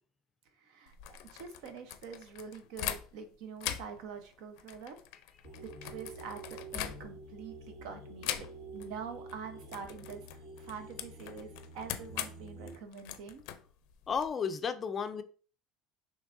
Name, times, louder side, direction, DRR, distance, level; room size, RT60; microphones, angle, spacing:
voice 1, 0.6-5.0 5.6-13.4, right 6 dB, 75° right, 7 dB, 0.9 m, -46 dB
sound 1, 0.9-3.3 3.6-7.4 8.2-8.9 9.1-9.4 9.7-14.3, left 12 dB, 85° left, 0.5 m, -42 dB
sound 2, 5.4-12.7, right 2 dB, 60° right, 1.4 m, -48 dB
voice 2, 14.1-15.2, left 6 dB, 25° left, 10 dB, 0.4 m, -33 dB
5.8 x 3.2 x 2.6 m, 0.40 s
cardioid pair, 150°, 0 cm